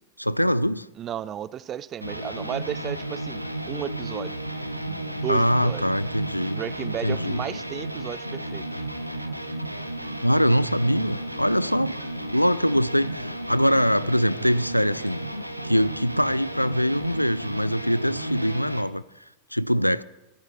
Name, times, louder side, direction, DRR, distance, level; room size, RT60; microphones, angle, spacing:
voice 1, 0.2-0.9 5.3-6.6 7.0-7.4 10.2-11.9 12.3-15.2 15.6-19.0 19.5-20.0, equal, 90° left, 0.4 m, -23 dB
voice 2, 1.0-4.3 4.8-5.8 6.5-8.9, right 10 dB, 30° right, 0.4 m, -34 dB
sound 1, 2.0-18.8, right 1 dB, 90° right, 0.9 m, -33 dB
28.5 x 12.5 x 3.1 m
figure-of-eight pair, 90°, 0 cm